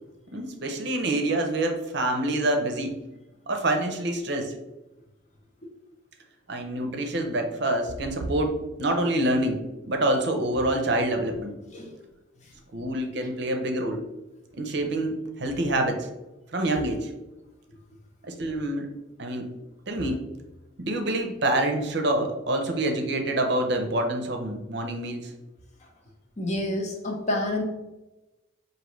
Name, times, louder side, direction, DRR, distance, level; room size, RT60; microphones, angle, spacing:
voice 1, 0.3-3.0 3.5-4.5 6.5-11.6 12.7-14.1 14.5-16.1 16.5-17.1 18.2-18.9 19.2-19.5 19.9-20.2 20.8-25.3, right 1 dB, 60° right, 4 dB, 0.6 m, -26 dB
voice 2, 26.4-27.6, left 1 dB, 35° left, 1 dB, 0.8 m, -28 dB
5.1 x 2.7 x 3.0 m, 1.0 s
head